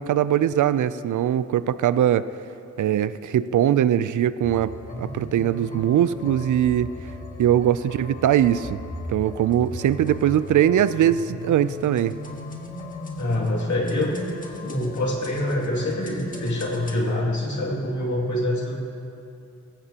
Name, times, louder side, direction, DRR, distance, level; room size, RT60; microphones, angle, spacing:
voice 1, 0.0-2.3 2.8-4.7 5.0-6.9 7.4-8.8 9.1-12.2, right 10 dB, 80° right, 15 dB, 0.4 m, -21 dB
sound 1, 4.4-17.0, left 1 dB, 25° left, 1.6 m, -37 dB
voice 2, 13.2-14.2 14.6-18.8, left 1 dB, 75° left, -2 dB, 2.4 m, -25 dB
17.5 x 15.0 x 2.9 m, 2.6 s
wide cardioid pair, 80°, 30 cm